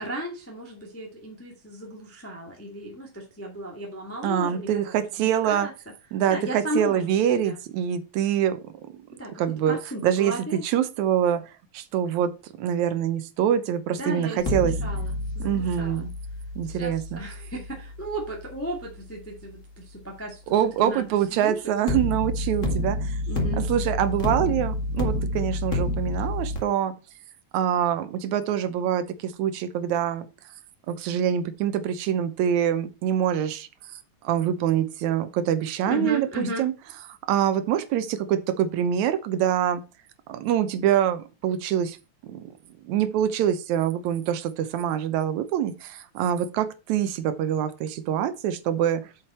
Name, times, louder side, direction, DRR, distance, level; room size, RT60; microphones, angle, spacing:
voice 1, 0.0-4.7 5.2-5.7 6.3-7.0 7.4-7.6 9.2-9.3 9.7-10.6 14.0-16.0 16.6-20.5 20.8-21.5 23.3-23.6 35.9-36.6, equal, 5° left, 1.5 m, -35 dB
voice 2, 4.2-5.7 6.1-9.0 9.4-9.8 10.0-14.8 15.4-16.1 16.6-17.2 20.5-23.2 23.6-27.0 27.5-30.3 30.9-33.7 34.2-36.7 37.3-39.8 40.3-42.0 42.2-42.5 42.8-49.1, right 10 dB, 75° right, 2.2 m, -25 dB
sound 1, 14.4-19.5 21.9-26.6, left 1 dB, 30° left, 1.9 m, -29 dB
7.9 x 6.4 x 4.4 m
omnidirectional pair, 3.5 m